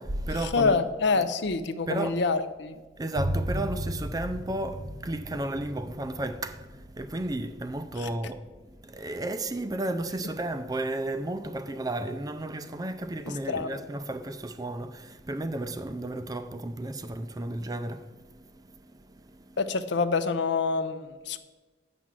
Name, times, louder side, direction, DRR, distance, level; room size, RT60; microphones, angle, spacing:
voice 1, 0.0-0.8 1.9-2.2 3.0-19.6, right 1 dB, 20° right, 0.5 m, -33 dB
voice 2, 0.5-2.8 13.5-13.8 19.6-21.4, left 4 dB, 70° left, 0.6 m, -26 dB
sound 1, 3.1-10.5, right 1 dB, 55° right, 1.1 m, -36 dB
8.2 x 6.1 x 7.5 m
head